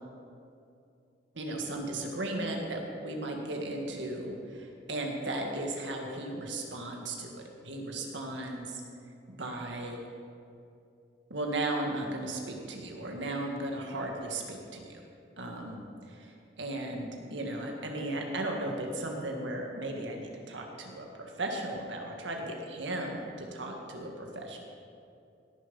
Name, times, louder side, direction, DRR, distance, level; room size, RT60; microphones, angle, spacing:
voice 1, 1.4-7.3 7.6-8.7 9.3-10.0 11.3-15.0 15.4-15.8 16.6-21.1 21.4-23.2 23.5-24.6, right 1 dB, 75° right, 1 dB, 1.8 m, -35 dB
17.0 x 7.1 x 5.5 m, 2.5 s
head